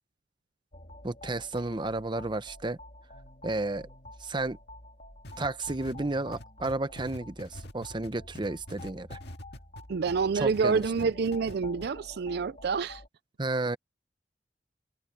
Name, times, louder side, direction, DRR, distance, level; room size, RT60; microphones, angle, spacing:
sound 1, 0.7-13.1, left 1 dB, 45° left, 2.7 m, -49 dB
voice 1, 1.0-2.8 3.4-3.9 4.2-4.6 5.4-9.2 10.3-10.8 13.4-13.8, right 2 dB, 25° right, 0.8 m, -32 dB
sound 2, 5.2-10.2 10.5-11.5 11.8-11.9, left 1 dB, 70° left, 2.0 m, -44 dB
voice 2, 9.9-13.0, right 5 dB, 65° right, 0.4 m, -28 dB
head